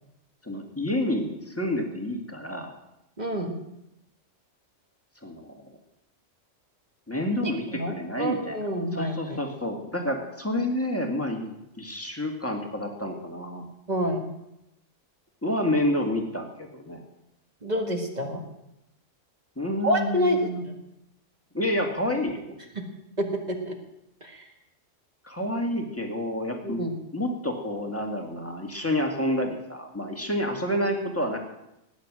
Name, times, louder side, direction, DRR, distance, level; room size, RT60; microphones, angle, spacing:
voice 1, 0.4-2.7 5.2-5.6 7.1-8.6 8.9-13.7 15.4-17.0 19.6-20.6 21.5-22.6 25.2-26.8 27.1-31.4, left 1 dB, 10° left, 3 dB, 2.0 m, -29 dB
voice 2, 3.2-3.5 7.4-9.4 13.9-14.3 17.6-18.4 19.8-20.7 22.8-22.9 23.2-23.8 24.2-24.5 26.6-26.9, equal, 35° right, 3 dB, 1.9 m, -28 dB
18.0 x 9.5 x 6.2 m, 0.86 s
omnidirectional pair, 1.3 m